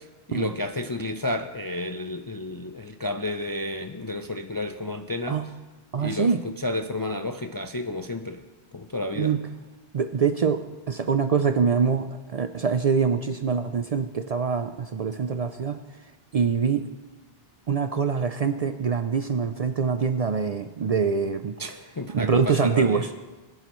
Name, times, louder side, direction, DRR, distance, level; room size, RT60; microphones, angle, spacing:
voice 1, 0.0-5.4 6.0-8.4 8.7-9.3 21.6-23.1, left 2 dB, 35° left, 6 dB, 0.3 m, -31 dB
voice 2, 5.9-6.4 9.2-9.5 9.9-15.9 16.3-16.9 17.7-21.6 22.1-23.1, right 6 dB, 50° right, 9 dB, 0.4 m, -24 dB
21.0 x 11.0 x 3.1 m, 1.3 s
omnidirectional pair, 1.0 m